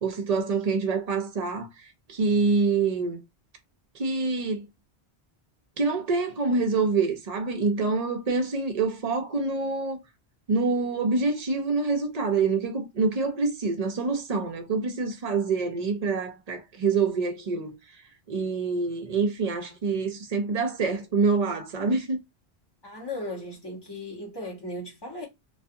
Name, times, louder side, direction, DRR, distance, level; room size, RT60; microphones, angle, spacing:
voice 1, 0.0-1.7 2.1-3.2 3.9-4.6 5.8-10.0 10.5-17.7 18.3-22.2, right 4 dB, 45° right, 0.6 m, -26 dB
voice 2, 22.8-25.3, left 1 dB, 25° left, 1.0 m, -36 dB
2.4 x 2.3 x 2.6 m
omnidirectional pair, 1.1 m